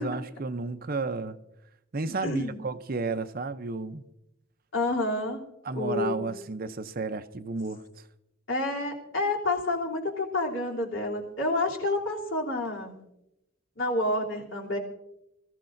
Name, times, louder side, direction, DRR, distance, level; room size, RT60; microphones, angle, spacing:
voice 1, 0.0-1.4 1.9-4.1 5.6-7.8, right 3 dB, 45° right, 0.6 m, -32 dB
voice 2, 2.2-2.6 4.7-5.4 5.7-6.3 8.5-12.9 13.8-14.8, left 2 dB, 75° left, 3.1 m, -29 dB
26.0 x 14.5 x 2.6 m
head